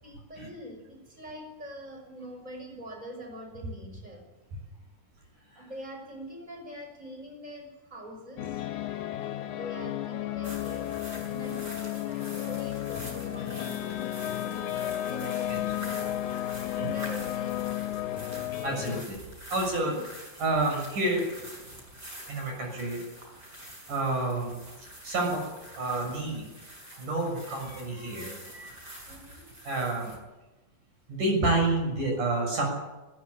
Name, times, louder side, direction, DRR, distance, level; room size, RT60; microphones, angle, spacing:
voice 1, 0.0-4.2 5.6-8.6 9.6-16.1 16.7-17.6 19.8-20.0 29.1-29.4, equal, 10° right, 2 dB, 5.9 m, -44 dB
sound 1, 8.4-19.0, left 13 dB, 70° left, 2.3 m, -33 dB
voice 2, 8.7-9.2 15.5-15.6 16.8-16.9 18.6-19.2 19.5-20.0 20.4-21.3 22.3-23.0 23.9-24.6 25.0-25.4 25.7-26.5 27.0-29.0 29.6-30.1 31.1-32.7, right 2 dB, 65° right, 1 dB, 8.3 m, -29 dB
sound 2, 10.4-30.2, equal, 25° right, 6.9 m, -46 dB
20.5 x 17.5 x 8.8 m, 1.1 s
omnidirectional pair, 4.0 m